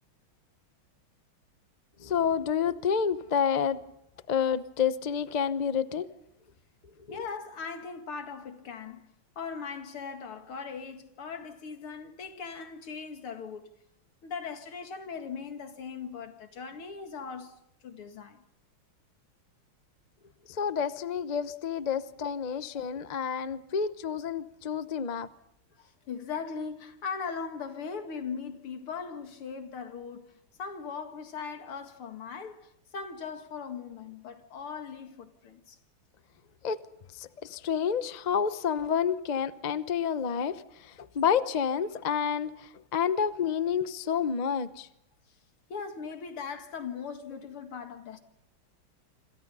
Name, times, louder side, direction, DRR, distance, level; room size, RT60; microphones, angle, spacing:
voice 1, 2.0-3.8 4.3-6.0 20.5-25.3 36.6-36.8 37.1-44.9, left 7 dB, 60° left, 0.4 m, -29 dB
voice 2, 7.1-9.1 9.4-13.7 14.2-18.4 22.7-22.8 23.5-23.6 25.7-35.8 45.7-48.2, left 5 dB, 85° left, 2.8 m, -39 dB
27.5 x 26.5 x 5.5 m
omnidirectional pair, 2.3 m